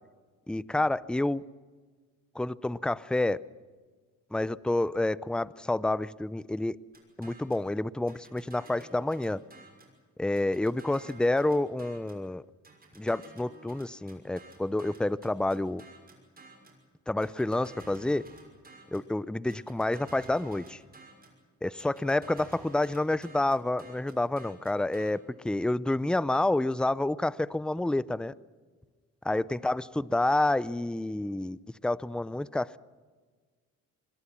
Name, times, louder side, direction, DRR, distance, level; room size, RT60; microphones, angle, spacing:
voice 1, 0.5-1.4 2.4-3.4 4.3-6.8 7.2-9.4 10.2-12.4 13.0-15.8 17.1-18.3 18.9-20.8 21.6-28.3 29.2-32.8, left 2 dB, 5° left, 19 dB, 0.5 m, -29 dB
sound 1, 6.9-7.7 8.1-10.0 10.4-12.3 12.6-16.8 17.2-19.1 19.5-21.4 21.8-25.1, right 3 dB, 30° right, 6.1 m, -52 dB
25.0 x 21.5 x 5.9 m, 1.5 s
cardioid pair, 90°, 30 cm